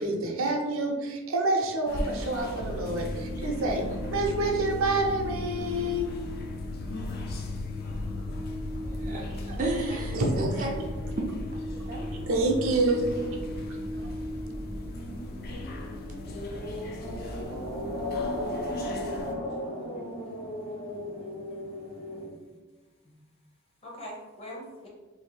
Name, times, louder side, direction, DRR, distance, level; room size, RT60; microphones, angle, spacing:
voice 1, 0.0-3.8 4.1-6.1 10.1-10.5 12.3-13.3, right 2 dB, 75° right, 1 dB, 0.6 m, -27 dB
sound 1, 1.9-19.3, left 1 dB, 45° left, 0.4 m, -40 dB
sound 2, 2.6-18.5, left 2 dB, 60° left, 1.2 m, -37 dB
voice 2, 8.9-10.7 11.9-12.3, right 2 dB, 35° right, -2 dB, 0.4 m, -34 dB
voice 3, 9.9-10.7 11.7-11.8 23.0-23.2 23.8-24.9, left 1 dB, 25° left, -3 dB, 0.8 m, -43 dB
sound 3, 13.0-22.3, left 1 dB, 80° left, 1.2 m, -36 dB
2.7 x 2.6 x 3.9 m, 1.2 s
head